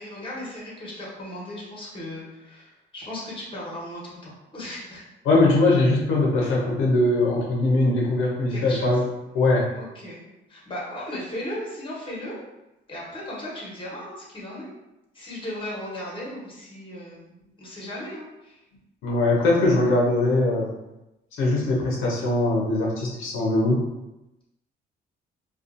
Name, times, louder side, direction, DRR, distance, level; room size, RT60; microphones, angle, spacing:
voice 1, 0.0-5.0 6.4-6.6 8.5-9.0 9.7-10.2 10.5-12.4 12.9-14.7 15.1-18.6, left 1 dB, 25° left, -5 dB, 1.1 m, -36 dB
voice 2, 5.3-9.0 9.3-9.7 19.0-20.7 21.4-23.8, left 2 dB, 90° left, -3 dB, 0.6 m, -21 dB
2.5 x 2.3 x 2.5 m, 0.95 s
cardioid pair, 90°, 20 cm